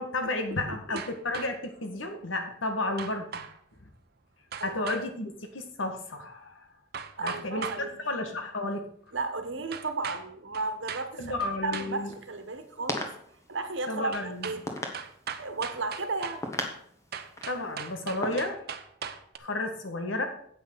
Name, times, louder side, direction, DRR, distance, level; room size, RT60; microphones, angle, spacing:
voice 1, 0.0-3.5 4.6-6.7 7.2-8.9 11.2-12.1 13.9-14.5 17.5-18.6 19.4-20.3, left 2 dB, 80° left, 6 dB, 1.6 m, -32 dB
sound 1, 1.0-1.7 3.0-3.6 4.5-5.1 6.9-7.8 9.7-10.2 10.5-11.1 11.4-11.9 14.1-14.6 14.9-16.4 17.1-19.4, right 6 dB, 50° right, 0.8 m, -38 dB
voice 2, 7.2-8.0 9.1-11.3 11.6-13.0 13.5-14.7 15.4-16.4, right 3 dB, 70° right, 8 dB, 1.3 m, -34 dB
sound 2, 11.9-18.3, left 1 dB, 15° left, 1.4 m, -39 dB
8.6 x 6.2 x 6.8 m, 0.65 s
head